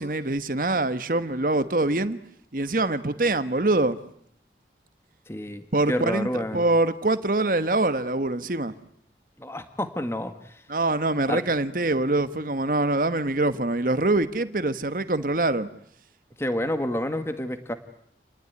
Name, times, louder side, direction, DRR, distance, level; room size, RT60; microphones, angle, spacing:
voice 1, 0.0-2.2 2.5-4.0 5.7-8.7 10.7-15.7, right 2 dB, 50° right, 1.2 m, -24 dB
voice 2, 5.3-6.6 9.4-10.6 11.3-11.4 16.4-17.7, left 1 dB, 15° left, 1.7 m, -29 dB
29.0 x 20.0 x 9.6 m
head